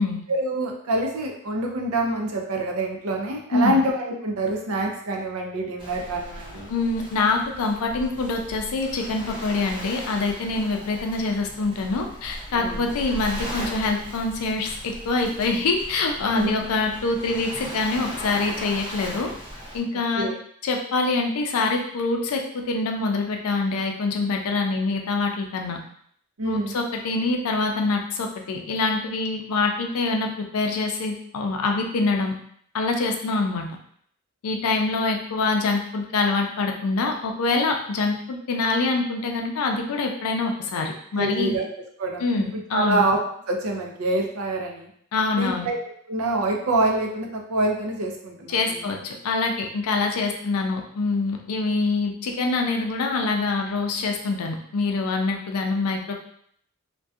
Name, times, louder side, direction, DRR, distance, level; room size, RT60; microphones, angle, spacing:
voice 1, 0.3-6.7 12.5-12.8 16.3-16.7 20.2-20.4 26.4-26.7 41.1-41.7 42.0-43.2 43.5-44.9 45.4-45.8 46.1-48.9, right 2 dB, 75° right, 1 dB, 0.5 m, -26 dB
Waves surf, 5.8-19.8, equal, 25° right, 0.6 m, -38 dB
voice 2, 6.7-19.3 19.7-20.3 20.6-25.8 26.5-32.3 32.7-33.7 34.4-41.6 42.2-43.0 45.1-45.7 48.5-56.1, left 3 dB, 90° left, 3 dB, 0.4 m, -25 dB
2.6 x 2.2 x 2.3 m, 0.65 s
head